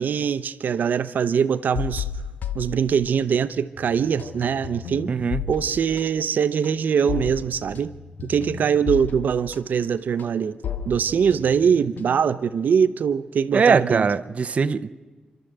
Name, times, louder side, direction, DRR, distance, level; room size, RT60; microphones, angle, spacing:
voice 1, 0.0-2.1 2.5-5.1 5.5-7.9 8.2-10.6 10.9-14.1, right 7 dB, 80° right, 13 dB, 0.7 m, -22 dB
sound 1, 1.8-3.5 3.8-12.4, left 7 dB, 80° left, 1.4 m, -34 dB
voice 2, 5.1-5.4 13.5-14.9, right 5 dB, 45° right, 9 dB, 0.7 m, -21 dB
29.5 x 12.5 x 7.9 m, 1.3 s
wide cardioid pair, 160°, 3 cm